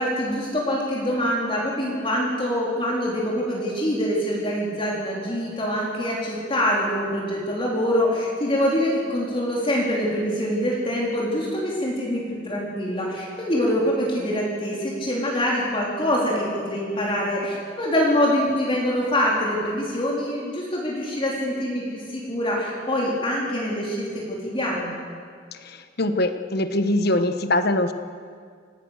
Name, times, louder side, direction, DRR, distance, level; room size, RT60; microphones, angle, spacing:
voice 1, 0.0-24.9, equal, 25° left, -4 dB, 3.9 m, -25 dB
voice 2, 25.6-27.9, left 1 dB, 55° left, 9 dB, 1.3 m, -23 dB
27.5 x 18.0 x 6.6 m, 2.1 s
head